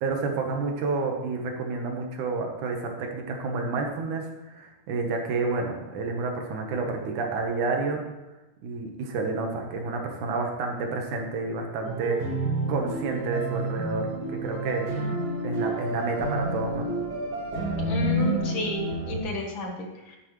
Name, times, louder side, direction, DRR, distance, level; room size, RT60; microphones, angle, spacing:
voice 1, 0.0-8.0 8.6-12.2 12.7-15.0 15.4-16.9, right 4 dB, 70° right, 2 dB, 2.6 m, -29 dB
sound 1, 11.8-19.2, right 1 dB, 50° right, 3.0 m, -29 dB
voice 2, 17.8-20.2, left 1 dB, 50° left, 1 dB, 1.6 m, -32 dB
11.5 x 10.0 x 3.2 m, 1.1 s
omnidirectional pair, 3.7 m